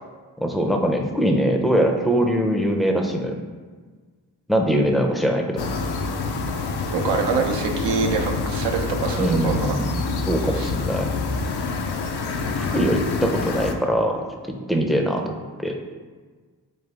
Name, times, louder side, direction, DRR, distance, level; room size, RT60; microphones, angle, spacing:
voice 1, 0.4-3.4 4.5-5.6 9.2-11.1 12.6-14.2 14.7-15.8, equal, ahead, 2 dB, 0.5 m, -22 dB
sound 1, 5.6-13.7, left 4 dB, 65° left, 0.5 m, -27 dB
voice 2, 6.9-9.8 10.5-10.7, right 5 dB, 70° right, 2 dB, 0.6 m, -25 dB
3.3 x 3.3 x 3.3 m, 1.5 s
supercardioid pair, 40°, 43 cm